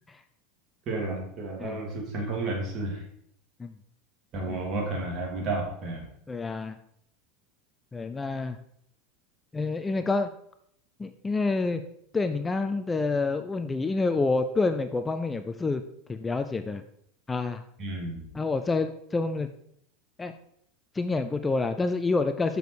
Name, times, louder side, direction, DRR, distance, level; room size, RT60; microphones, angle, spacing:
voice 1, 0.9-3.0 4.3-6.0 17.8-18.2, right 2 dB, 45° right, 0 dB, 3.0 m, -31 dB
voice 2, 6.3-6.8 7.9-8.6 9.5-10.3 11.0-11.8 12.1-15.8 16.1-16.8 17.3-17.6 18.3-19.5 20.2-20.3 20.9-22.6, left 3 dB, 15° left, 9 dB, 0.5 m, -28 dB
6.8 x 6.2 x 4.7 m, 0.70 s
hypercardioid pair, 85°, 0 cm